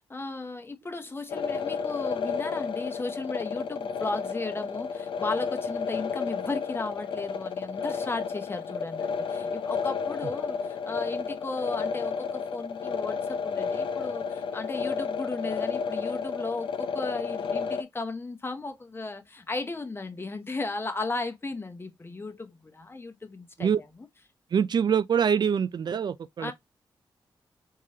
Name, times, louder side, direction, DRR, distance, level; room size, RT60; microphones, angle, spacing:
voice 1, 0.1-24.1 26.4-26.5, left 3 dB, 25° left, 0.8 m, -35 dB
sound 1, 1.3-17.8, left 6 dB, 75° left, 0.6 m, -32 dB
voice 2, 24.5-26.5, right 7 dB, 55° right, 0.3 m, -24 dB
3.7 x 3.2 x 2.7 m
cardioid pair, 90°, 9 cm